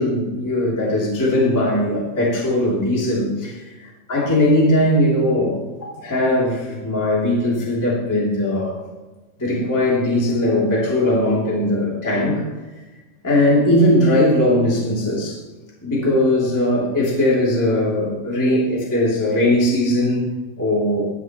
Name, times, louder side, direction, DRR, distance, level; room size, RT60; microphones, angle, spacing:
voice 1, 0.0-3.6 4.1-8.8 9.4-12.4 13.2-15.4 15.8-21.1, left 1 dB, 5° left, -5 dB, 2.1 m, -19 dB
15.5 x 10.0 x 3.1 m, 1.2 s
omnidirectional pair, 4.5 m